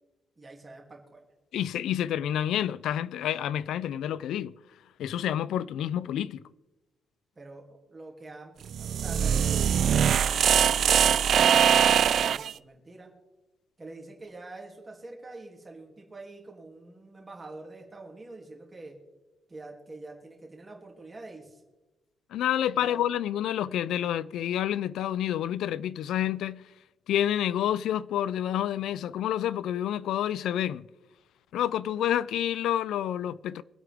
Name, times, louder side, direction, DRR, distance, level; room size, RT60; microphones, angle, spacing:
voice 1, 0.4-1.2 7.4-13.1 13.8-18.9 19.5-21.6 22.8-23.1, right 2 dB, 15° right, 2.7 m, -46 dB
voice 2, 1.5-4.5 5.0-6.4 22.3-26.6 27.1-30.8 31.5-33.6, left 11 dB, 85° left, 0.4 m, -29 dB
sound 1, 8.7-12.5, right 8 dB, 50° right, 0.3 m, -22 dB
25.5 x 8.4 x 3.5 m
cardioid pair, 175°, 0 cm